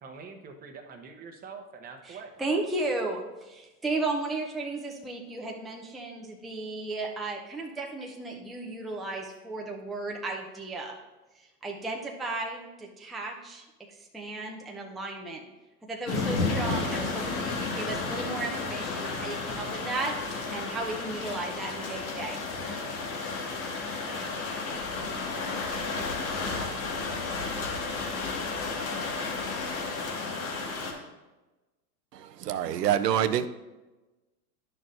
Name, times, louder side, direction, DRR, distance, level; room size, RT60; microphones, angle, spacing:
voice 1, 0.0-2.3, right 5 dB, 20° right, 4 dB, 0.8 m, -44 dB
voice 2, 2.0-11.0 11.4-13.6 14.0-15.4 15.8-20.2 20.5-22.4, right 2 dB, ahead, 0 dB, 0.5 m, -34 dB
sound 1, 16.1-30.9, left 3 dB, 60° left, 1.9 m, -32 dB
voice 3, 32.1-33.5, right 10 dB, 85° right, 11 dB, 0.6 m, -26 dB
11.0 x 6.1 x 2.6 m, 1.1 s
hypercardioid pair, 110°, 47 cm